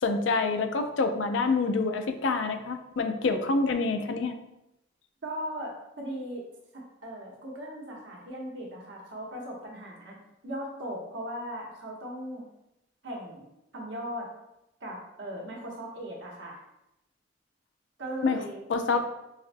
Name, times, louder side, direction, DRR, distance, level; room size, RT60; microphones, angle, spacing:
voice 1, 0.0-4.3 18.2-18.4 18.7-19.1, left 3 dB, 90° left, 7 dB, 0.4 m, -27 dB
voice 2, 5.2-6.4 6.7-10.2 10.4-12.4 13.0-13.5 13.7-14.3 14.8-16.6 18.0-18.6 18.9-19.0, equal, 80° right, -3 dB, 1.0 m, -38 dB
4.7 x 2.2 x 2.5 m, 0.88 s
head